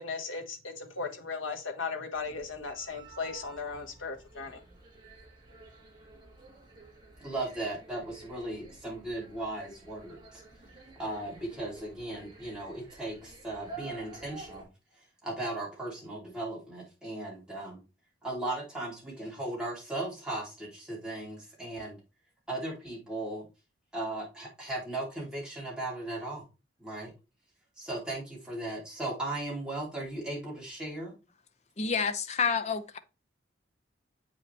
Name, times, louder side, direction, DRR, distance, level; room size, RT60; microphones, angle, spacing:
voice 1, 0.0-4.6, left 4 dB, 90° left, 1.4 m, -37 dB
sound 1, 2.1-14.6, right 3 dB, 25° right, 2.1 m, -51 dB
voice 2, 7.2-10.4 11.0-14.7 15.2-17.8 18.2-22.0 22.5-23.4 23.9-26.4 26.8-27.1 27.8-31.1, right 2 dB, 5° right, 3.0 m, -37 dB
voice 3, 31.8-33.0, left 5 dB, 35° left, 0.6 m, -29 dB
8.1 x 5.1 x 3.3 m
head